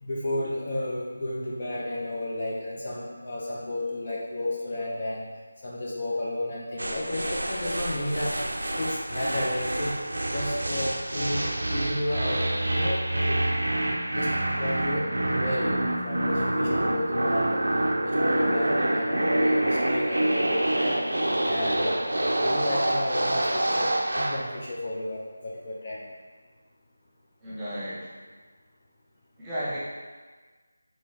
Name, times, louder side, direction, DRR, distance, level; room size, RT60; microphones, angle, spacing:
voice 1, 0.0-5.3 5.6-8.4 8.8-10.0 10.2-13.5 14.1-17.6 18.0-21.1 21.5-22.0 22.4-26.1, left 1 dB, 40° left, -3 dB, 0.6 m, -32 dB
sound 1, 6.8-24.5, right 1 dB, 75° right, 0.5 m, -27 dB
voice 2, 27.4-28.1 29.4-29.8, equal, 10° right, -10 dB, 0.9 m, -33 dB
4.7 x 3.1 x 2.8 m, 1.4 s
figure-of-eight pair, 165°, 0 cm